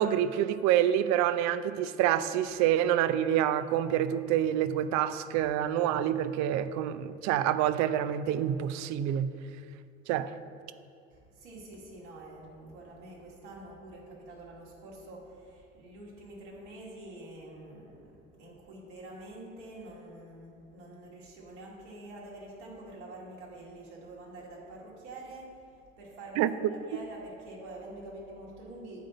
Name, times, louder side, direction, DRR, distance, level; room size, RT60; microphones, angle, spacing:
voice 1, 0.0-9.3 10.1-10.3 26.4-26.5, right 11 dB, 50° right, 13 dB, 0.5 m, -27 dB
voice 2, 11.1-18.1 18.4-25.6 26.0-26.6 26.9-29.1, right 1 dB, 75° right, -4 dB, 2.3 m, -46 dB
9.5 x 3.8 x 7.2 m, 2.4 s
figure-of-eight pair, 65°, 35 cm